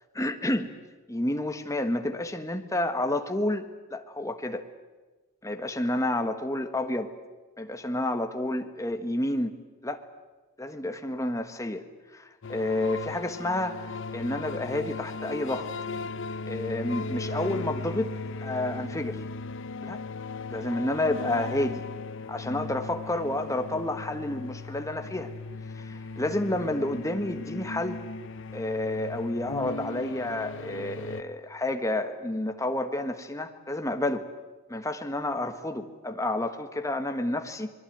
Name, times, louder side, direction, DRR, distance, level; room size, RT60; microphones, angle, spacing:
voice 1, 0.1-0.7 1.1-4.6 5.4-7.1 7.6-9.5 9.8-10.0 10.6-11.9 12.1-15.7 16.5-18.1 18.4-19.2 19.8-20.0 20.5-21.8 22.3-25.3 25.7-28.0 28.5-34.3 34.7-37.7, left 1 dB, 15° left, 7 dB, 1.5 m, -30 dB
sound 1, 12.4-31.2, left 3 dB, 60° left, 0.8 m, -37 dB
24.5 x 21.5 x 9.3 m, 1.2 s
head